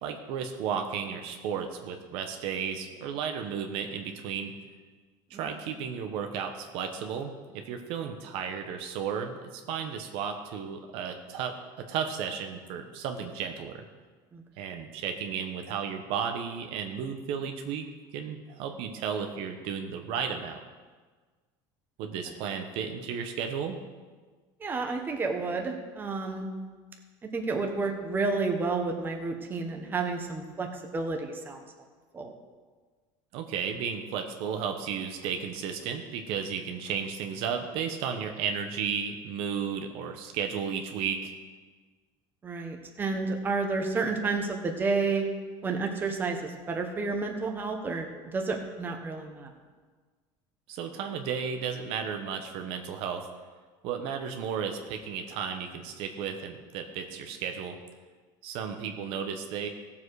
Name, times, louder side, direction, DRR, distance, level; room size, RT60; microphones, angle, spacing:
voice 1, 0.0-4.5 5.3-11.5 11.9-13.8 14.6-17.8 18.1-20.6 22.0-23.8 33.3-41.3 50.7-53.3 53.8-57.8 58.4-59.7, right 7 dB, 60° right, 5 dB, 1.2 m, -33 dB
voice 2, 24.6-26.5 27.3-31.6 32.1-32.3 42.4-45.3 45.6-49.5, right 3 dB, 20° right, 3 dB, 1.3 m, -30 dB
16.0 x 7.4 x 4.9 m, 1.4 s
cardioid pair, 150°, 11 cm